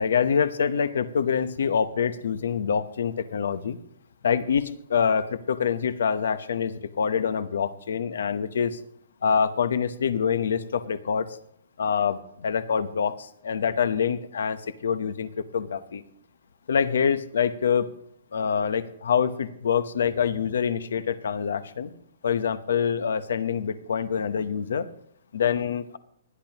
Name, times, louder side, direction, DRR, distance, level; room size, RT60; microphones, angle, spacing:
voice 1, 0.0-3.8 4.2-8.8 9.2-11.3 11.8-16.0 16.7-17.9 18.3-21.9 22.2-24.9 25.3-26.0, left 7 dB, 75° left, 13 dB, 0.9 m, -25 dB
19.5 x 12.0 x 2.9 m, 0.68 s
hypercardioid pair, 180°, 0 cm